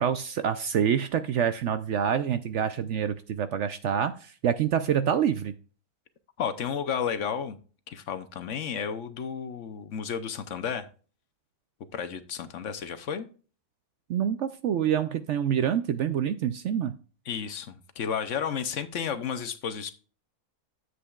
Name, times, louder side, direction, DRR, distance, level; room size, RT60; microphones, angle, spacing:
voice 1, 0.0-5.5 14.1-17.0, right 8 dB, 65° right, 11 dB, 0.8 m, -26 dB
voice 2, 6.4-7.6 7.9-10.9 11.9-13.3 17.3-19.9, left 7 dB, 60° left, 10 dB, 1.0 m, -32 dB
10.0 x 7.9 x 2.3 m, 0.37 s
omnidirectional pair, 1.6 m